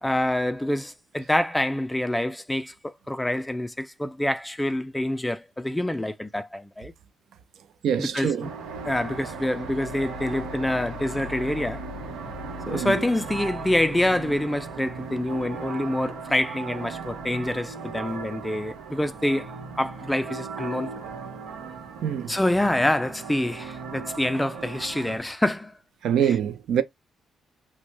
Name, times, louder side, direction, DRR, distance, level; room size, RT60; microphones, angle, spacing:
voice 1, 0.0-6.9 8.0-8.5 8.8-11.8 12.7-19.5 19.8-20.9 22.3-25.7 26.3-26.4, left 1 dB, 10° left, 0.3 m, -26 dB
voice 2, 7.8-8.5 12.7-12.9 22.0-22.4 26.0-26.8, right 9 dB, 75° right, 0.5 m, -24 dB
sound 1, 8.4-25.2, right 4 dB, 90° right, 0.8 m, -37 dB
3.0 x 2.1 x 3.1 m
cardioid pair, 90°, 0 cm